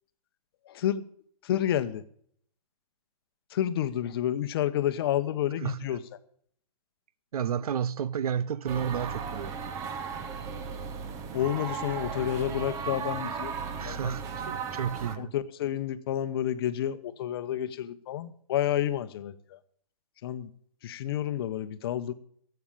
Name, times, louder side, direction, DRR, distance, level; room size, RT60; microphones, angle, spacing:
voice 1, 0.7-1.0 1.4-2.0 3.5-6.0 11.3-14.1 15.2-19.6 20.2-20.5 20.8-22.1, left 11 dB, 40° left, 0.9 m, -30 dB
voice 2, 5.6-6.0 7.3-9.5 13.8-15.3, right 8 dB, 75° right, 0.6 m, -31 dB
sound 1, 8.7-15.2, right 6 dB, 15° right, 0.7 m, -36 dB
12.5 x 8.0 x 7.3 m
hypercardioid pair, 155°, 19 cm